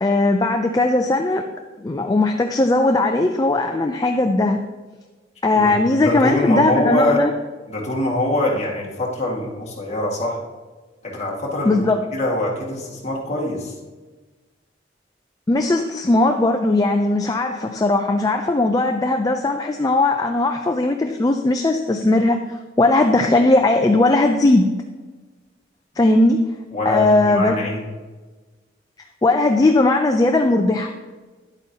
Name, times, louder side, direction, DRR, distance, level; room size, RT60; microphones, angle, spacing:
voice 1, 0.0-1.4 1.8-4.6 5.4-7.3 11.7-12.0 15.5-24.7 26.0-26.4 26.9-27.6 29.2-30.9, left 2 dB, 20° left, 5 dB, 0.3 m, -18 dB
voice 2, 5.5-7.2 7.7-10.4 11.0-11.8 12.1-13.7 26.7-27.8, left 1 dB, 35° left, -3 dB, 1.7 m, -23 dB
10.0 x 8.1 x 2.8 m, 1.3 s
head